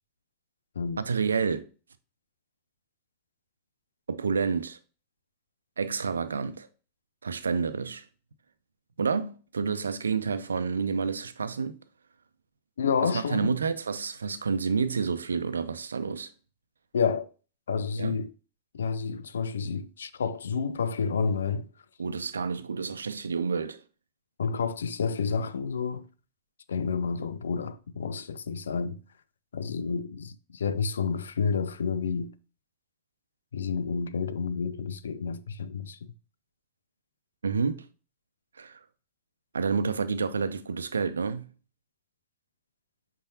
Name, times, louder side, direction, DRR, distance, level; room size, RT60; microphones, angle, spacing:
voice 1, 1.0-1.7 4.1-4.8 5.8-6.7 7.2-8.0 9.0-11.8 13.0-16.3 18.0-18.2 22.0-23.8 37.4-37.9 38.6-38.8 39.5-41.5, right 5 dB, 75° right, 0.6 m, -29 dB
voice 2, 12.8-13.5 16.9-17.3 17.7-18.3 18.7-21.7 24.4-26.1 26.7-29.0 29.5-32.3 33.5-36.1, left 5 dB, 70° left, 0.5 m, -30 dB
8.3 x 4.6 x 2.9 m
figure-of-eight pair, 90°, 0 cm